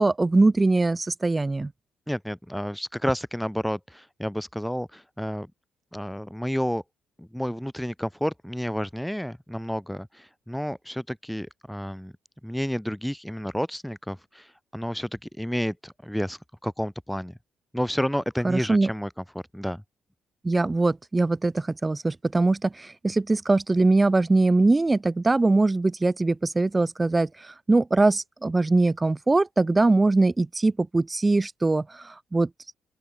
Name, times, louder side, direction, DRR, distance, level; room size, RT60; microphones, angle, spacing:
voice 1, 0.0-1.7 18.4-18.9 20.4-32.5, right 2 dB, 20° right, 1.5 m, -22 dB
voice 2, 2.1-5.5 5.9-6.8 7.2-12.1 12.4-17.4 17.7-19.2 19.5-19.8, equal, ahead, 1.2 m, -30 dB
open air
cardioid pair, 90°, 0 cm